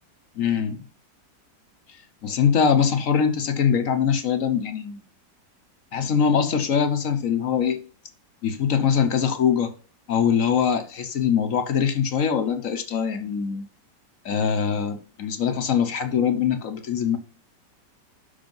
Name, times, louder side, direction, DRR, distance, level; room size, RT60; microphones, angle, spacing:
voice 1, 0.4-0.8 2.2-5.0 5.9-7.8 8.4-9.7 10.1-13.7 14.2-17.2, left 7 dB, 55° left, 1.2 m, -22 dB
6.2 x 5.2 x 5.4 m
omnidirectional pair, 1.9 m